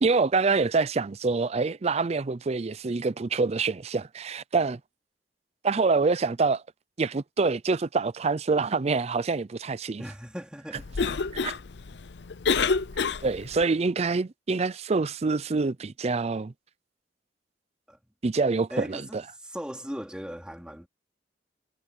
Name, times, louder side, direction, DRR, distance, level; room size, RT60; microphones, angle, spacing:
voice 1, 0.0-4.8 5.6-6.6 7.0-10.0 11.4-11.5 13.2-16.5 18.2-19.2, right 4 dB, 35° right, 0.5 m, -26 dB
voice 2, 10.0-10.9 17.9-18.0 18.7-20.9, equal, 5° right, 3.3 m, -38 dB
Cough, 10.7-13.6, left 5 dB, 70° left, 0.7 m, -28 dB
head